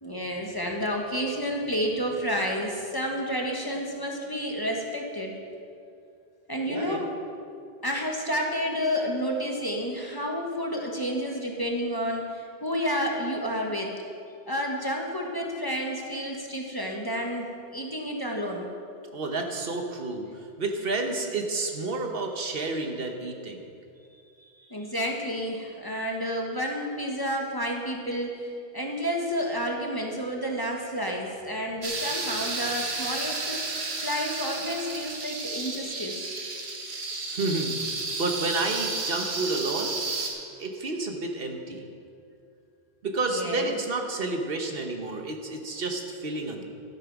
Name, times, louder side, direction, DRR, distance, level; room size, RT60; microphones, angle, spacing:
voice 1, 0.0-5.4 6.5-7.1 7.8-14.0 14.5-18.7 24.7-33.6 33.9-36.3 43.3-43.7, equal, 20° left, 0 dB, 1.3 m, -30 dB
voice 2, 6.7-7.1 19.1-20.3 20.6-23.7 37.3-40.0 40.6-41.9 43.0-46.6, right 2 dB, 65° right, 3 dB, 1.3 m, -30 dB
sound 1, 31.8-40.3, right 3 dB, 85° right, 1.6 m, -32 dB
12.5 x 8.8 x 5.9 m, 2.5 s
omnidirectional pair, 1.0 m